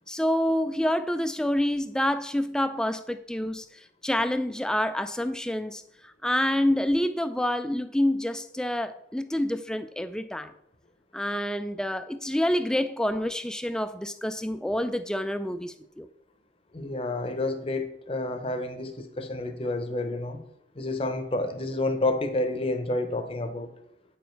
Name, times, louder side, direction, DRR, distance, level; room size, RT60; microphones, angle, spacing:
voice 1, 0.1-3.7 4.0-5.8 6.2-10.5 11.1-16.1, left 1 dB, 5° left, 0.3 m, -27 dB
voice 2, 16.7-20.4 20.8-23.7, left 2 dB, 30° left, 0.7 m, -29 dB
8.6 x 5.1 x 4.5 m
head